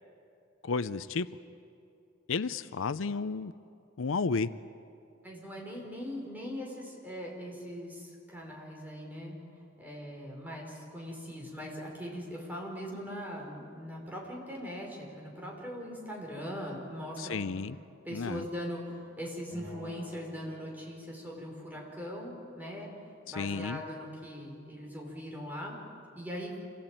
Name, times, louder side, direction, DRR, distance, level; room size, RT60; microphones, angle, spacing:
voice 1, 0.6-1.3 2.3-3.5 4.0-4.5 17.2-17.8 18.1-18.4 23.4-23.8, left 4 dB, 80° left, 14 dB, 0.6 m, -32 dB
voice 2, 5.2-9.4 9.8-17.4 18.0-25.7 26.1-26.6, equal, 10° right, -2 dB, 5.1 m, -40 dB
Acoustic guitar, 19.5-22.8, left 2 dB, 45° right, 6.4 m, -52 dB
27.5 x 18.0 x 9.1 m, 2.6 s
head